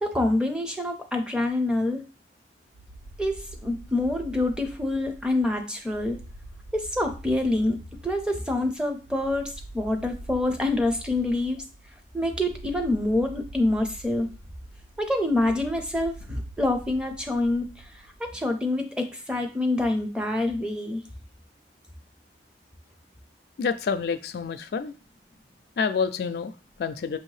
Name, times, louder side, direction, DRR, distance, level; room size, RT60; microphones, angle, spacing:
voice 1, 0.0-2.0 3.2-6.2 6.7-7.8 8.0-11.6 12.1-14.3 15.0-17.9 18.2-21.0, left 2 dB, 5° right, 4 dB, 0.5 m, -26 dB
sound 1, 2.7-18.3, right 1 dB, 90° right, 0.6 m, -45 dB
voice 2, 23.6-24.9 25.8-27.2, left 5 dB, 60° left, 9 dB, 0.3 m, -28 dB
5.8 x 2.7 x 3.2 m, 0.34 s
head